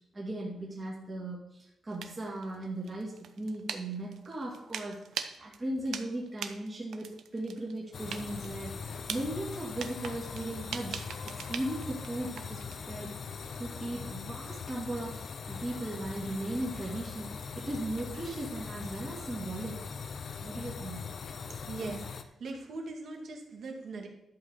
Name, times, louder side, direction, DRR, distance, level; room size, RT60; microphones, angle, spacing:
voice 1, 0.1-13.1 13.6-19.8 20.4-21.0, right 1 dB, 20° right, -4 dB, 2.3 m, -37 dB
sound 1, 1.9-12.9, right 7 dB, 80° right, 0.9 m, -43 dB
sound 2, 7.9-22.2, left 5 dB, 50° left, 0.7 m, -41 dB
voice 2, 21.7-24.1, right 3 dB, 60° right, 1 dB, 2.2 m, -40 dB
11.5 x 5.5 x 6.8 m, 0.84 s
wide cardioid pair, 155°, 0 cm